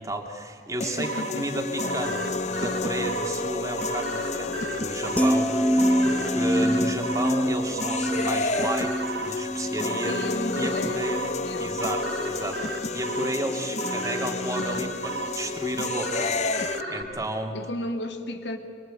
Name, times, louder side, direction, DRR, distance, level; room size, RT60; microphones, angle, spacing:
voice 1, 0.0-10.2 10.5-11.2 11.6-16.3 16.9-17.5, right 1 dB, 15° right, 3 dB, 2.7 m, -32 dB
sound 1, 0.8-16.8, left 3 dB, 40° left, 0.7 m, -31 dB
voice 2, 1.0-1.6 9.9-11.1 11.4-11.8 17.5-18.6, left 1 dB, 75° left, 6 dB, 2.5 m, -34 dB
sound 2, 1.0-17.0, right 2 dB, 75° right, 3.7 m, -35 dB
sound 3, 5.2-11.4 11.8-12.1, equal, 10° left, 0.9 m, -26 dB
26.0 x 24.0 x 9.1 m, 2.5 s
head